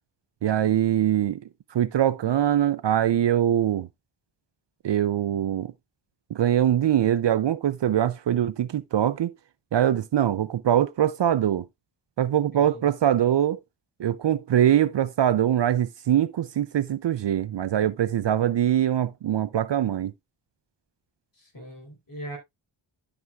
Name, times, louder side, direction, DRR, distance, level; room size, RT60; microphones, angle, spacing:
voice 1, 0.4-1.4 1.7-3.9 4.8-5.7 6.3-9.3 9.7-11.7 12.2-13.6 14.0-20.1, right 10 dB, 60° right, 0.5 m, -23 dB
voice 2, 12.5-12.9 21.4-22.4, equal, 40° left, 4.2 m, -40 dB
12.5 x 6.0 x 2.4 m
wide cardioid pair, 130°, 50 cm